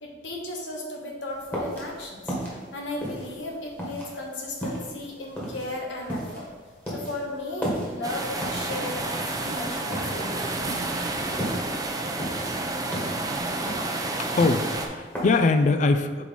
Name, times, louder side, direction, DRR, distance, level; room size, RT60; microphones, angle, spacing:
voice 1, 0.0-2.4 2.7-6.5 6.9-9.1 9.4-10.5, left 2 dB, 75° left, 0 dB, 1.2 m, -35 dB
sound 1, 1.3-15.7, equal, 10° left, 1.5 m, -35 dB
sound 2, 8.0-14.9, right 2 dB, 20° right, 0.5 m, -30 dB
voice 2, 14.2-16.3, left 3 dB, 40° left, 9 dB, 0.3 m, -22 dB
5.5 x 4.5 x 4.2 m, 1.5 s
head